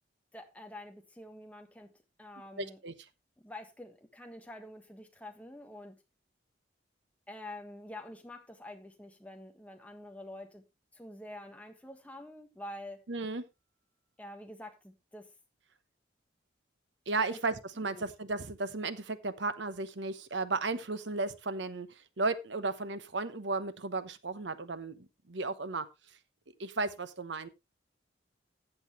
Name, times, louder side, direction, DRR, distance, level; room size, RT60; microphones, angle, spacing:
voice 1, 0.3-2.8 3.4-6.0 7.3-10.6 10.9-13.0 14.2-15.3 17.3-17.4 17.9-18.0, left 1 dB, 10° left, 1.5 m, -47 dB
voice 2, 2.6-2.9 13.1-13.4 17.1-25.9 26.6-27.5, right 3 dB, 80° right, 1.1 m, -34 dB
14.5 x 8.1 x 3.1 m
head